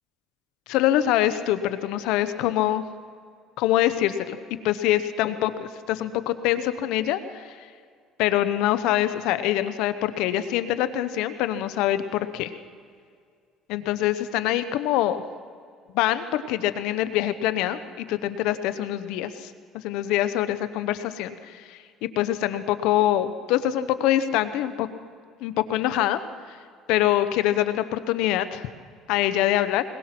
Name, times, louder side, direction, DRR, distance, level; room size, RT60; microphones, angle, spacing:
voice 1, 0.7-2.8 3.6-4.4 4.6-7.6 8.2-12.5 13.7-15.2 15.9-24.9 25.4-26.2 26.9-28.7 29.1-29.8, left 13 dB, 80° left, 12 dB, 1.1 m, -24 dB
21.5 x 21.0 x 6.1 m, 2.1 s
supercardioid pair, 95°, 0 cm